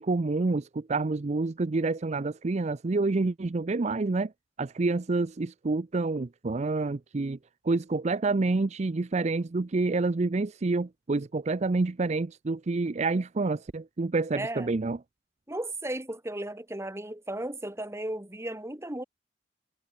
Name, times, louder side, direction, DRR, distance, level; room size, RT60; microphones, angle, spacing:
voice 1, 0.0-4.3 4.6-7.4 7.6-15.0, right 3 dB, 40° right, 0.5 m, -28 dB
voice 2, 14.3-14.7 15.5-19.0, right 1 dB, 15° right, 2.5 m, -35 dB
head